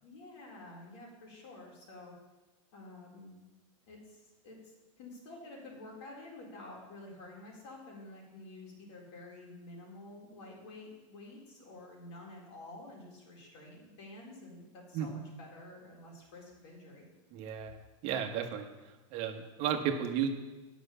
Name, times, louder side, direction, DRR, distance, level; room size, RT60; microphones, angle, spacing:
voice 1, 0.0-2.1 2.7-3.4 3.9-4.6 5.0-17.1, left 2 dB, 60° left, -3 dB, 4.0 m, -50 dB
voice 2, 17.3-18.7 19.1-20.3, right 8 dB, 40° right, 5 dB, 1.3 m, -33 dB
9.6 x 6.1 x 7.0 m, 1.1 s
supercardioid pair, 145°, 16 cm